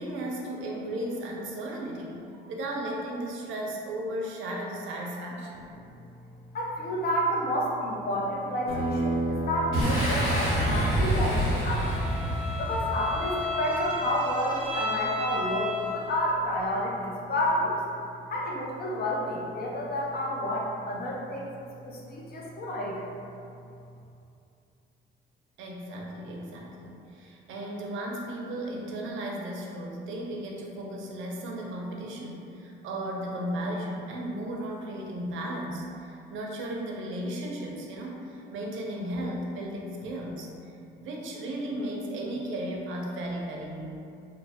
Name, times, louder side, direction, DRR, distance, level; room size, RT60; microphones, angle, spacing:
voice 1, 0.0-5.7 25.6-40.7 41.0-44.0, right 1 dB, 80° right, -1 dB, 0.5 m, -35 dB
voice 2, 6.5-12.0 12.6-17.8 18.3-21.5 21.8-23.0, equal, 50° left, -3 dB, 0.6 m, -30 dB
sound 1, 8.7-13.8, equal, 25° left, 0.9 m, -33 dB
Boom, 9.7-13.3, right 1 dB, 75° left, 0.9 m, -27 dB
Bowed string instrument, 11.6-16.3, left 2 dB, 5° right, 0.6 m, -33 dB
3.0 x 2.0 x 2.7 m, 2.6 s
cardioid pair, 90°, 20 cm